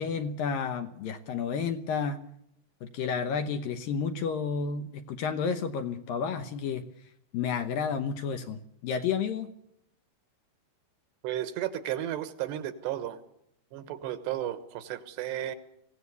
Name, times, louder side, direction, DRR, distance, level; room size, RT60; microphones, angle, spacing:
voice 1, 0.0-2.2 2.8-6.8 7.3-9.5, left 6 dB, 70° left, 7 dB, 2.3 m, -31 dB
voice 2, 11.2-13.2 13.7-15.6, right 12 dB, 80° right, 11 dB, 3.3 m, -33 dB
24.0 x 16.5 x 8.2 m, 0.76 s
omnidirectional pair, 4.9 m